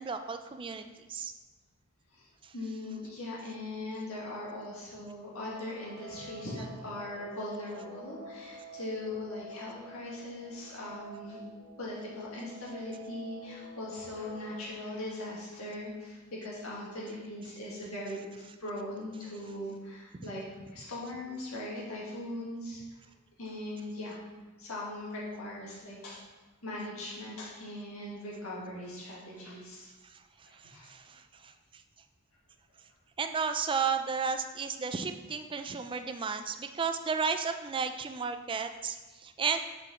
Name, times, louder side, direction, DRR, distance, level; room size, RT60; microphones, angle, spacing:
voice 1, 0.0-1.3 2.4-2.5 20.2-20.3 30.0-31.5 33.2-39.6, right 5 dB, 25° right, 8 dB, 0.3 m, -33 dB
voice 2, 2.1-11.4 11.8-18.2 18.6-22.8 23.4-24.2 24.6-26.2 26.6-29.9 30.5-30.9 35.6-35.7, left 1 dB, 70° left, -5 dB, 2.0 m, -40 dB
Guitar, 5.2-14.7, right 1 dB, 75° right, 1.7 m, -49 dB
6.3 x 4.8 x 4.3 m, 1.2 s
head